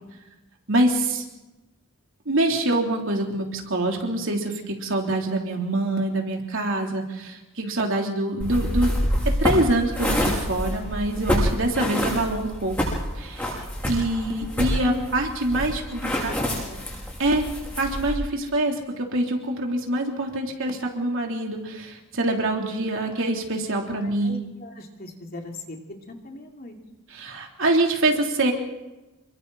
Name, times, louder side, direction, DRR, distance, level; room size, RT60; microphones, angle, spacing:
voice 1, 0.7-1.2 2.3-9.0 9.2-12.8 13.2-16.3 17.2-17.5 17.8-24.4 27.1-28.5, right 2 dB, 60° right, 1 dB, 3.6 m, -25 dB
sound 1, 8.4-18.2, equal, 10° left, 7.6 m, -27 dB
voice 2, 16.2-16.9 24.2-25.8 26.1-26.7, left 1 dB, 45° left, 2 dB, 2.8 m, -40 dB
29.0 x 23.5 x 4.3 m, 1.1 s
head